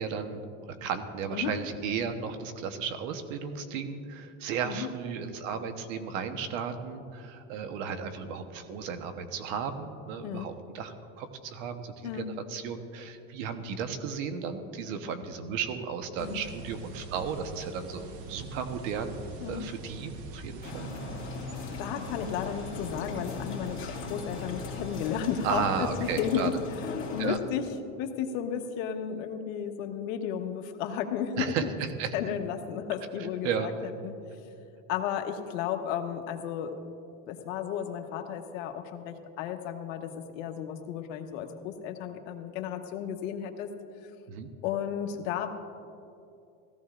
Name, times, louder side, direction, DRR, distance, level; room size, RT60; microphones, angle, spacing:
voice 1, 0.0-20.9 25.4-26.5 27.2-27.4 31.3-32.1 33.2-33.7 44.3-44.5, right 6 dB, 85° right, 8 dB, 1.2 m, -34 dB
sound 1, 16.2-26.1, right 3 dB, 65° right, 1.3 m, -44 dB
sound 2, 20.6-27.3, left 5 dB, 35° left, 2.2 m, -39 dB
voice 2, 21.3-26.5 27.1-27.7 28.0-31.7 32.1-33.7 34.0-34.1 34.9-36.8 37.3-43.7 44.6-45.5, left 8 dB, 85° left, 5 dB, 1.2 m, -33 dB
17.0 x 14.5 x 2.5 m, 2.6 s
supercardioid pair, 135°, 38 cm